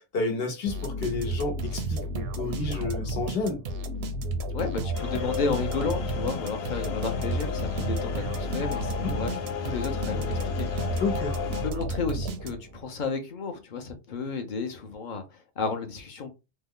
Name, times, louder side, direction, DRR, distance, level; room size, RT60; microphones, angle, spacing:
voice 1, 0.0-3.6 9.0-9.1 11.0-11.4, left 3 dB, 75° left, 1.2 m, -30 dB
sound 1, 0.7-12.9, right 1 dB, 85° right, 0.9 m, -32 dB
voice 2, 4.5-10.7 10.9-11.0 11.6-16.3, left 5 dB, 55° left, 0.8 m, -32 dB
sound 2, 4.9-11.7, left 6 dB, 90° left, 0.9 m, -33 dB
3.1 x 2.1 x 3.6 m
omnidirectional pair, 1.0 m